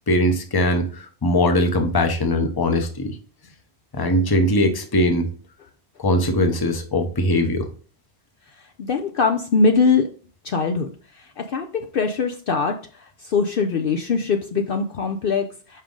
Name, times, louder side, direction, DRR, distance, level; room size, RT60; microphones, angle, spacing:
voice 1, 0.1-3.2 3.9-5.3 6.0-7.7, left 1 dB, 25° left, 6 dB, 0.8 m, -20 dB
voice 2, 8.8-10.1 10.4-10.9 11.1-15.8, left 4 dB, 60° left, 5 dB, 0.7 m, -22 dB
5.4 x 5.0 x 3.8 m, 0.39 s
omnidirectional pair, 1.2 m